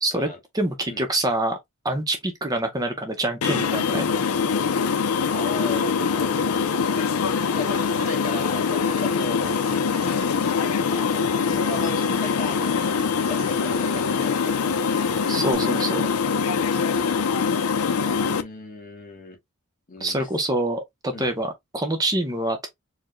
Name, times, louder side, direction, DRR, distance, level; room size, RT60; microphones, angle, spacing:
voice 1, 0.5-1.6 1.8-4.0 15.3-16.0 20.0-22.7, right 1 dB, 15° right, 0.6 m, -25 dB
sound 1, 3.4-18.4, left 5 dB, 80° left, 0.5 m, -23 dB
voice 2, 5.3-9.6 9.9-10.2 10.9-14.6 18.1-19.4 19.9-20.3 21.1-21.3, left 2 dB, 40° left, 1.4 m, -36 dB
Human voice / Acoustic guitar, 7.5-15.5, right 4 dB, 80° right, 1.0 m, -45 dB
4.4 x 2.2 x 3.0 m
head